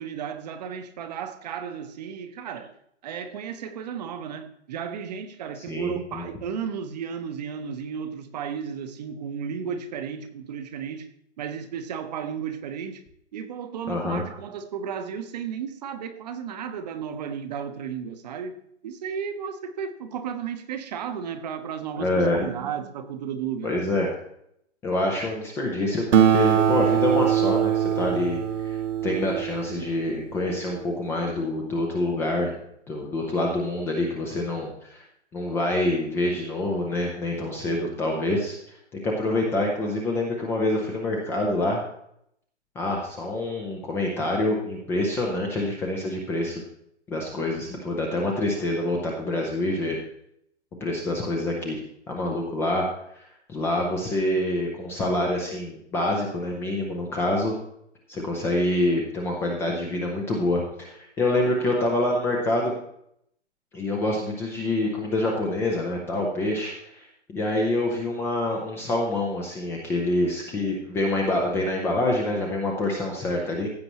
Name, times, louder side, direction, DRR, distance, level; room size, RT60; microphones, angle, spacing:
voice 1, 0.0-2.7 3.0-11.1 11.4-13.0 13.3-18.6 18.8-23.8, right 7 dB, 35° right, 1.0 m, -34 dB
voice 2, 5.7-6.2 13.9-14.2 22.0-22.5 23.6-24.1 24.8-28.8 29.0-32.6 32.9-35.1 35.3-38.6 38.9-41.8 42.8-46.6 47.1-50.0 50.8-51.8 52.1-52.9 53.2-57.5 58.1-62.7 63.7-73.7, left 1 dB, 5° left, 0.6 m, -26 dB
Acoustic guitar, 26.1-31.0, right 9 dB, 85° right, 0.9 m, -23 dB
15.5 x 7.7 x 3.0 m
hypercardioid pair, 145°, 36 cm